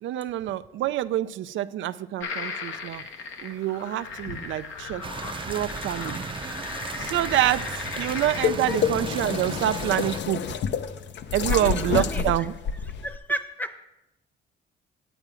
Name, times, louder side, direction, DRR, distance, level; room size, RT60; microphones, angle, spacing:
voice 1, 0.0-3.0 3.4-5.0 5.5-6.2 7.0-10.4 11.3-12.5, right 13 dB, 75° right, 12 dB, 0.4 m, -27 dB
sound 1, 2.2-8.5, left 5 dB, 80° left, 1.3 m, -36 dB
sound 2, 5.0-10.2, right 5 dB, 25° right, 0.6 m, -36 dB
sound 3, 7.0-13.2, left 7 dB, 65° left, 0.7 m, -29 dB
voice 2, 11.5-12.2 13.0-13.8, right 1 dB, 10° left, 10 dB, 0.9 m, -33 dB
9.0 x 8.7 x 4.9 m, 0.93 s
cardioid pair, 90°, 20 cm